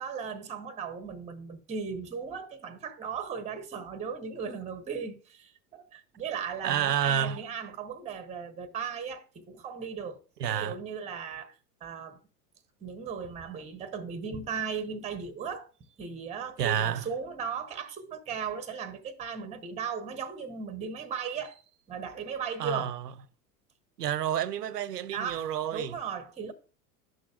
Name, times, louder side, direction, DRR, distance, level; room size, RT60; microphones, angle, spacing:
voice 1, 0.0-10.2 10.5-11.6 11.8-12.2 12.8-15.7 16.0-21.6 21.9-23.0 25.1-26.5, right 6 dB, 15° right, 0.8 m, -37 dB
voice 2, 6.6-7.4 10.4-10.7 16.6-17.1 22.6-23.1 24.0-26.0, right 9 dB, 85° right, 0.6 m, -29 dB
11.0 x 6.3 x 2.3 m
figure-of-eight pair, 85°, 47 cm